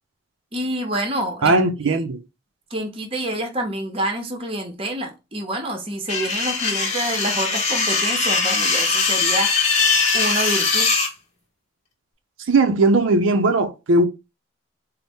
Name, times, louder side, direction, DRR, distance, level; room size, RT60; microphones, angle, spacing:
voice 1, 0.5-1.5 1.8-2.0 2.7-9.5 10.1-10.9, right 1 dB, 30° right, 0.7 m, -27 dB
voice 2, 1.4-2.2 12.5-14.1, right 2 dB, 80° right, 0.5 m, -18 dB
sound 1, 6.1-11.1, left 4 dB, 35° left, 0.9 m, -21 dB
4.1 x 2.0 x 3.4 m
head